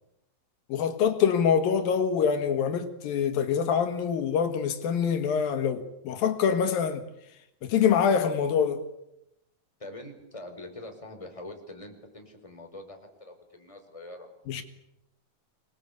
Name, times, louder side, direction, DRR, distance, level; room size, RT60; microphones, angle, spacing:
voice 1, 0.7-7.0 7.6-8.8 14.5-14.6, left 7 dB, 85° left, 3.6 m, -25 dB
voice 2, 9.8-14.3, left 1 dB, 10° left, 4.5 m, -44 dB
26.5 x 20.5 x 8.4 m
omnidirectional pair, 4.0 m